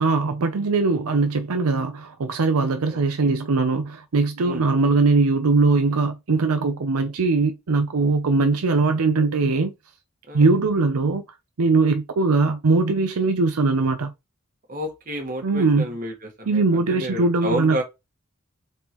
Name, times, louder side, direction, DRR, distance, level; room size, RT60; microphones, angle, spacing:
voice 1, 0.0-9.7 10.3-11.3 11.6-14.1 15.4-15.8 16.5-17.8, right 3 dB, 85° right, 0.6 m, -21 dB
voice 2, 2.9-3.3 4.4-4.6 10.3-10.5 14.7-17.8, equal, 40° right, 1.4 m, -31 dB
4.0 x 3.6 x 3.0 m
head